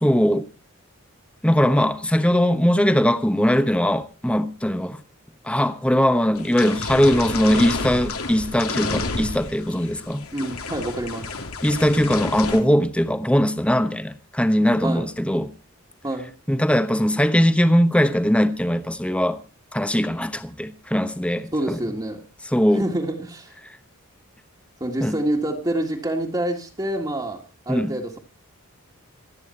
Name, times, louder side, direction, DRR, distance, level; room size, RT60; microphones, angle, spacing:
voice 1, 0.0-0.5 1.4-5.0 5.4-10.3 11.6-15.5 16.5-19.4 19.7-21.8 22.5-22.8 25.0-25.2 27.7-27.9, equal, 5° left, 1.0 m, -20 dB
sound 1, 6.3-12.6, left 3 dB, 85° left, 2.9 m, -30 dB
voice 2, 10.3-11.4 14.8-15.1 16.0-16.3 21.5-22.3 22.7-23.5 24.8-28.2, right 1 dB, 20° right, 1.8 m, -27 dB
27.0 x 9.2 x 4.3 m
head